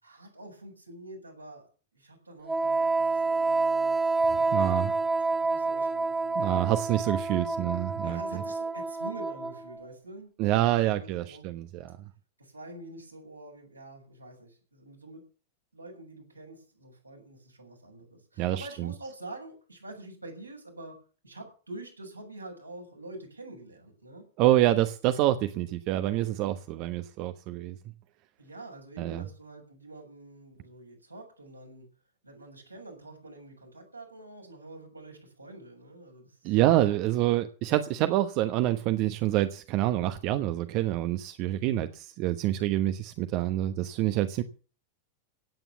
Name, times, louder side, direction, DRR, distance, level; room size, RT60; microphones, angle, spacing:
voice 1, 0.0-1.7 1.9-4.0 4.3-6.4 8.0-10.3 10.8-11.5 12.4-15.2 15.7-21.0 21.2-24.2 28.4-31.9 32.2-37.2, right 2 dB, 85° right, 6.9 m, -46 dB
Wind instrument woodwind instrument, 2.5-9.8, right 3 dB, 10° right, 1.7 m, -28 dB
voice 2, 4.5-4.9 6.3-8.2 10.4-12.0 18.4-18.9 24.4-27.8 29.0-29.2 36.4-44.4, right 14 dB, 40° right, 1.1 m, -27 dB
17.0 x 9.1 x 7.1 m
figure-of-eight pair, 90°, 0 cm